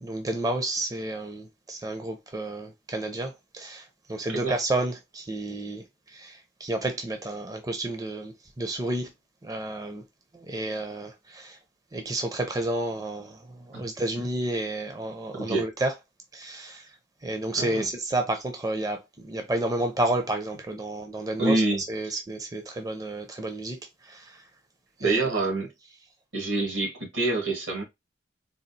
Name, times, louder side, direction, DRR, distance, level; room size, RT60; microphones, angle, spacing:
voice 1, 0.0-9.1 9.4-10.0 10.3-11.6 11.9-15.9 16.3-16.9 17.2-21.6 21.9-23.8 24.0-24.4 25.0-25.2, right 2 dB, 20° right, 0.5 m, -31 dB
voice 2, 15.3-15.7 17.6-17.9 21.4-21.8 25.0-25.7 26.3-27.8, right 2 dB, 80° right, 1.8 m, -26 dB
3.9 x 2.4 x 2.7 m
head